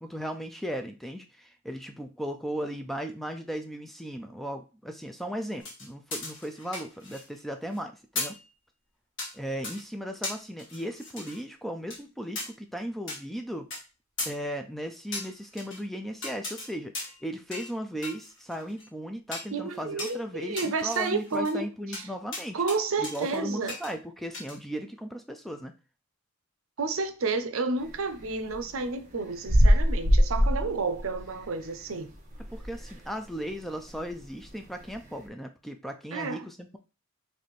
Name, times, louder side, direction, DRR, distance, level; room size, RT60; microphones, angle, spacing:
voice 1, 0.0-8.4 9.3-13.7 14.3-22.6 23.0-25.7 32.4-36.8, equal, ahead, 0.3 m, -36 dB
sound 1, 5.6-7.4 7.7-7.8 8.2-8.4 9.2-9.3 9.6-9.8 10.2-11.4 11.9-12.0 12.4-12.5 13.1-13.2 13.7-13.8 14.2-14.3 15.1-15.8 16.2-16.7 16.9-17.2 17.5-17.7 18.0-18.9 19.3-19.5 20.0-20.1 20.6-21.5 21.9-22.0 22.3-22.8 23.0-23.4 23.7-23.9 24.3-24.6, left 2 dB, 60° left, 1.7 m, -37 dB
voice 2, 19.5-22.1 22.5-23.8 26.8-32.1 36.1-36.5, right 4 dB, 70° right, 0.6 m, -31 dB
sound 2, 27.8-33.1 33.5-33.6 33.8-35.2, equal, 35° right, 1.2 m, -24 dB
4.1 x 3.3 x 3.1 m
head